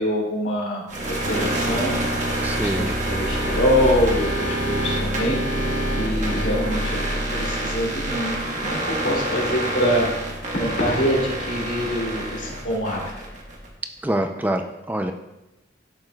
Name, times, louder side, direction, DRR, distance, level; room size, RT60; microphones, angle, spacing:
voice 1, 0.0-2.0 2.6-10.1 10.5-13.0, equal, 85° left, -3 dB, 2.7 m, -25 dB
sound 1, 0.9-13.7, right 1 dB, 40° right, 1.3 m, -26 dB
voice 2, 2.4-2.9 14.0-15.1, right 1 dB, 10° right, 5 dB, 0.4 m, -25 dB
12.0 x 6.8 x 2.3 m, 0.96 s
head